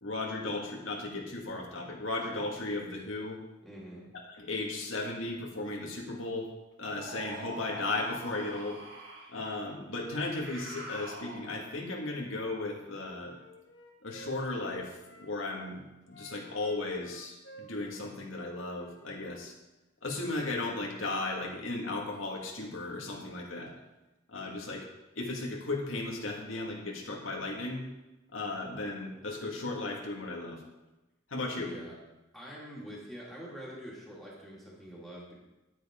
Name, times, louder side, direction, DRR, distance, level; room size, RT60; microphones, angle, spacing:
voice 1, 0.0-3.4 4.4-6.5 6.8-8.8 9.3-13.4 14.0-15.8 16.1-19.5 20.0-23.7 24.3-24.9 25.2-27.9 28.3-30.6 31.3-31.7, left 2 dB, 90° left, -1 dB, 2.0 m, -35 dB
voice 2, 3.6-4.0 31.5-31.9 32.3-35.3, equal, ahead, -6 dB, 2.6 m, -45 dB
sound 1, 7.0-9.4 10.1-11.8, right 2 dB, 65° right, 1.8 m, -45 dB
Wind instrument woodwind instrument, 12.4-15.7 16.1-19.5, right 1 dB, 60° left, 1.4 m, -53 dB
10.5 x 9.5 x 3.8 m, 1.0 s
head